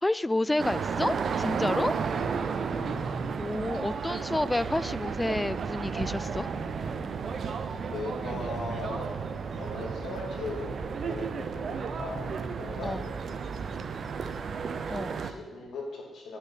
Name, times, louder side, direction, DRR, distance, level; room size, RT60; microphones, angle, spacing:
voice 1, 0.0-1.9 3.4-6.5 12.8-13.0 14.9-15.1, left 1 dB, 15° left, 18 dB, 0.3 m, -29 dB
sound 1, 0.6-15.3, right 5 dB, 60° right, 0.7 m, -33 dB
voice 2, 2.1-3.1 7.7-9.2 9.6-10.7 11.0-13.3 14.9-16.4, left 3 dB, 75° left, 0 dB, 2.6 m, -40 dB
sound 2, 5.7-12.7, right 1 dB, 20° right, 3.0 m, -46 dB
10.0 x 7.2 x 5.5 m, 1.2 s
cardioid pair, 75°, 0 cm